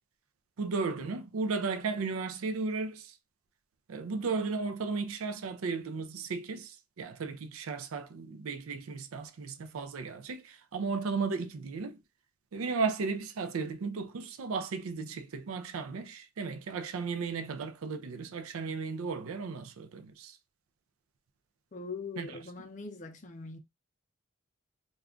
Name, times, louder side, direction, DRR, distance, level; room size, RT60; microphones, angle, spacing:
voice 1, 0.6-3.1 3.9-12.0 12.5-20.4 22.2-22.3, right 4 dB, 90° right, 0.4 m, -35 dB
voice 2, 21.7-23.6, left 4 dB, 35° left, 0.5 m, -42 dB
2.3 x 2.3 x 3.6 m
head